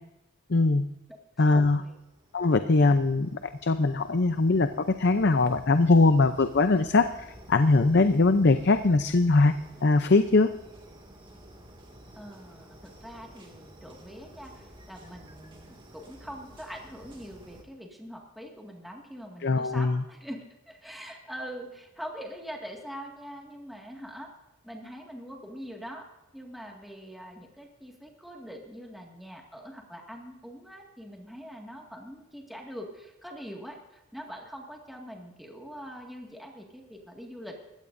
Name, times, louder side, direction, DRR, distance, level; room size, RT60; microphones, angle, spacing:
voice 1, 0.5-0.8 1.4-1.8 2.3-9.5 9.8-10.5 19.4-20.0, left 3 dB, 50° left, 9 dB, 0.6 m, -22 dB
voice 2, 1.5-2.0 12.1-24.3 24.6-26.1 26.3-37.6, equal, ahead, 0 dB, 2.0 m, -43 dB
sound 1, 1.8-17.6, right 1 dB, 25° right, 2.2 m, -51 dB
22.0 x 16.0 x 2.6 m, 0.96 s
head